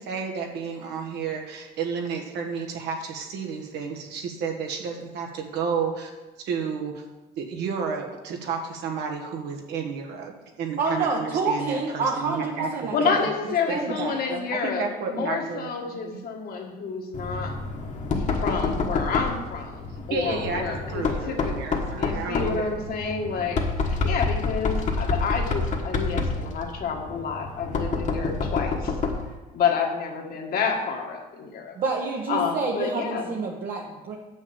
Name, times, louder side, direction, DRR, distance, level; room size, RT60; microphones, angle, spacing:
voice 1, 0.0-6.1 6.4-7.0 7.4-10.3 10.6-13.3 13.7-16.2 20.1-22.7, right 5 dB, 85° right, 2 dB, 1.5 m, -31 dB
voice 2, 10.8-13.2 13.7-14.2 31.7-34.2, right 4 dB, 55° right, -1 dB, 1.0 m, -28 dB
voice 3, 12.9-17.6 18.2-21.5 21.9-29.0 29.5-31.8 32.3-33.3, left 5 dB, 60° left, 2 dB, 1.7 m, -29 dB
Knock, 17.1-29.4, left 3 dB, 45° left, 1.4 m, -28 dB
7.3 x 6.3 x 7.0 m, 1.2 s
cardioid pair, 110°, 17 cm